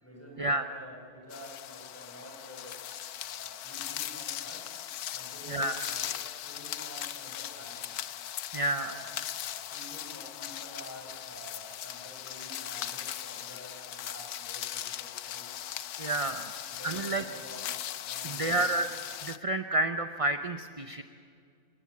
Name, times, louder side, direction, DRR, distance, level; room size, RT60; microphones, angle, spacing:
voice 1, 0.0-2.8 3.3-4.6 5.1-7.8 8.8-9.1 9.4-15.5 16.1-17.7 18.0-18.7, equal, 10° left, -1 dB, 7.7 m, -49 dB
sound 1, 1.3-19.4, left 11 dB, 85° left, 1.3 m, -39 dB
voice 2, 8.5-8.9 16.0-16.4 16.8-17.2 18.2-18.9 19.2-21.0, right 2 dB, 30° right, 8 dB, 0.6 m, -29 dB
27.5 x 20.0 x 8.6 m, 2.3 s
omnidirectional pair, 1.6 m